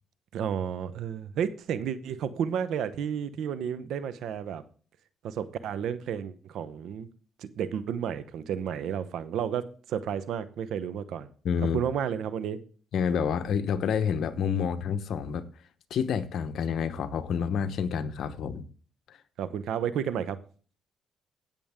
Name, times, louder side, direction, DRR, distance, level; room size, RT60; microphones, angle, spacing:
voice 1, 0.3-4.6 5.2-7.1 7.4-11.3 11.7-12.6 19.4-20.4, right 8 dB, 80° right, 0.9 m, -32 dB
voice 2, 11.4-11.8 12.9-15.4 15.9-18.7 19.1-19.2, left 7 dB, 70° left, 1.0 m, -28 dB
16.5 x 7.0 x 3.7 m
cardioid pair, 90°, 0 cm